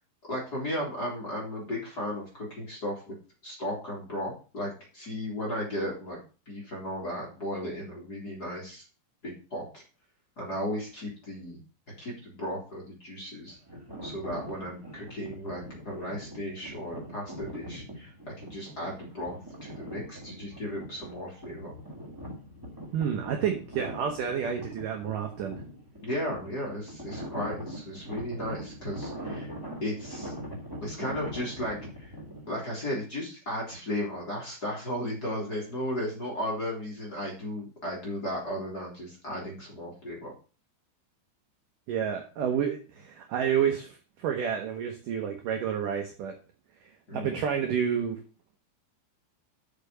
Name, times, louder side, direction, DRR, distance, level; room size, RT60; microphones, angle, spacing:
voice 1, 0.3-3.1 3.4-6.2 6.5-8.8 9.2-9.8 10.4-11.6 12.0-13.6 14.0-21.7 26.0-29.5 29.8-30.3 30.8-32.1 32.5-40.3 47.1-47.4, equal, 25° left, -4 dB, 2.8 m, -35 dB
sound 1, 13.5-32.5, equal, 15° right, 0.7 m, -42 dB
voice 2, 22.9-25.6 41.9-46.4 47.1-48.2, right 8 dB, 80° right, 4 dB, 1.9 m, -29 dB
6.9 x 6.5 x 6.7 m, 0.36 s
omnidirectional pair, 5.3 m